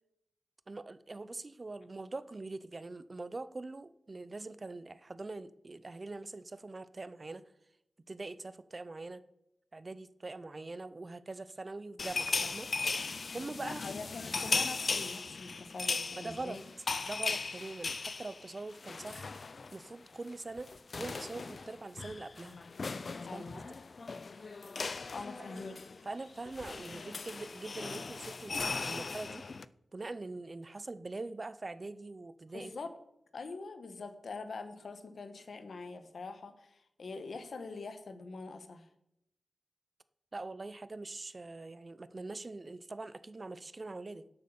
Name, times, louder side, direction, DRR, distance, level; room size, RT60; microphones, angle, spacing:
voice 1, 0.7-7.4 8.1-9.2 9.7-12.7 13.3-13.8 16.2-16.6 17.0-19.3 19.7-20.7 21.0-22.6 23.3-23.6 25.4-25.6 26.0-29.4 29.9-32.7 40.3-44.3, right 2 dB, 35° right, 15 dB, 0.6 m, -43 dB
sound 1, 12.0-19.9 20.1-20.3 20.6-29.6, left 4 dB, 50° left, 0.4 m, -38 dB
voice 2, 13.6-16.6 23.2-23.6 25.1-25.8 32.5-32.9 33.3-38.9, left 3 dB, 65° left, 9 dB, 1.3 m, -44 dB
11.5 x 8.1 x 7.0 m, 0.82 s
wide cardioid pair, 120°, 0 cm